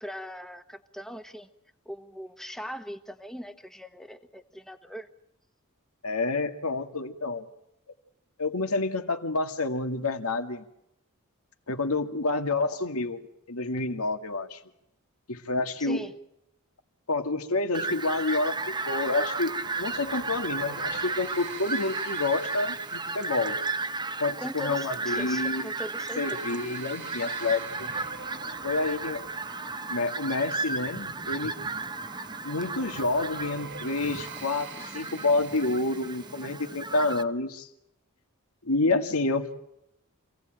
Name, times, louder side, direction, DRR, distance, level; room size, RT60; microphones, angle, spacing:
voice 1, 0.0-1.5 1.8-5.1 15.8-16.1 24.4-26.4, equal, ahead, 8 dB, 1.3 m, -40 dB
voice 2, 6.0-7.5 8.4-10.7 11.7-13.2 13.5-14.6 15.3-16.0 17.1-23.6 24.2-25.7 26.2-27.9 28.6-29.3 29.9-31.5 32.4-37.7 38.6-39.5, left 3 dB, 80° left, 7 dB, 2.0 m, -28 dB
Fowl, 17.7-37.2, right 3 dB, 20° right, 0.9 m, -34 dB
sound 1, 17.9-36.5, right 4 dB, 55° right, 1.6 m, -45 dB
27.5 x 17.5 x 9.0 m, 0.83 s
head